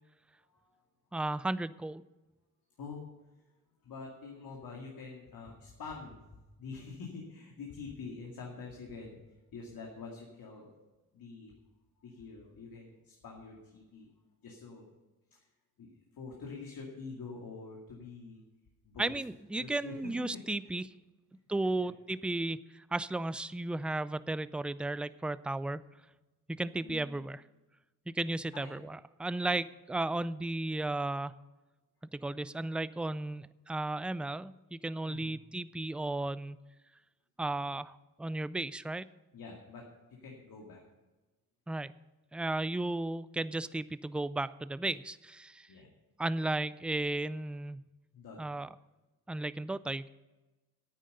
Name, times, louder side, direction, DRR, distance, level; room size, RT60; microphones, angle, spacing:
voice 1, 0.3-0.8 2.8-3.4 3.8-10.7 11.1-11.6 12.0-14.1 14.4-14.8 15.3-15.5 15.8-18.4 18.8-19.2 19.6-20.1 21.8-21.9 26.6-27.2 28.5-28.7 29.4-29.5 35.1-35.4 39.3-40.8 45.7-45.9 48.1-48.6, left 4 dB, 70° left, -1 dB, 2.4 m, -46 dB
voice 2, 1.1-2.0 19.0-20.8 21.5-25.8 26.5-27.4 28.1-31.3 32.1-36.6 37.4-39.1 41.7-41.9 42.3-45.7 46.2-47.8 48.4-48.7 49.3-50.1, right 2 dB, 5° right, 16 dB, 0.3 m, -34 dB
10.5 x 9.1 x 6.7 m, 1.1 s
cardioid pair, 85°, 36 cm